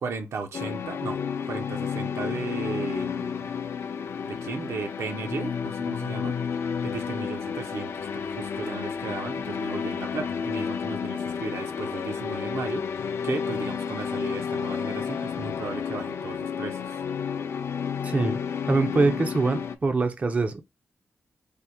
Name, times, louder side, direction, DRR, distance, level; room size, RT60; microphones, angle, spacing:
voice 1, 0.0-1.2 1.5-3.4 4.2-6.4 6.8-17.0, right 4 dB, 75° right, 0.7 m, -35 dB
sound 1, 0.5-19.8, left 6 dB, 60° left, 0.4 m, -31 dB
voice 2, 18.0-18.4 18.7-20.6, right 3 dB, 30° right, 0.4 m, -24 dB
3.4 x 2.0 x 4.2 m
wide cardioid pair, 105°, 5 cm